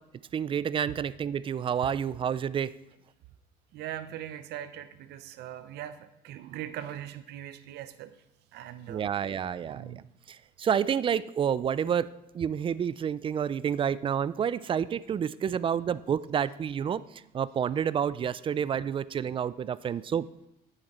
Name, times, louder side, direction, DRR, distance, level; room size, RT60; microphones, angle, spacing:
voice 1, 0.3-2.7 8.9-9.9 10.6-12.1 12.3-17.0 17.3-20.3, right 8 dB, 30° right, 18 dB, 0.3 m, -29 dB
voice 2, 3.7-8.1 8.5-9.1 9.7-10.1, right 11 dB, 80° right, 12 dB, 0.7 m, -40 dB
9.9 x 7.8 x 4.2 m, 0.86 s
cardioid pair, 110°, 17 cm